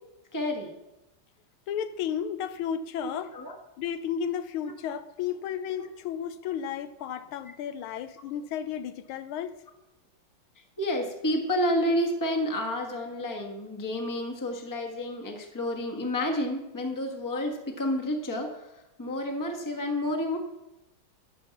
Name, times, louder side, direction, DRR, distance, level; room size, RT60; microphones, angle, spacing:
voice 1, 0.3-0.8 3.0-3.6 4.9-5.0 5.8-5.9 10.8-20.4, left 1 dB, 10° left, 1.0 m, -30 dB
voice 2, 1.7-3.3 3.8-9.6, left 8 dB, 85° left, 1.5 m, -33 dB
12.5 x 5.3 x 6.9 m
omnidirectional pair, 2.3 m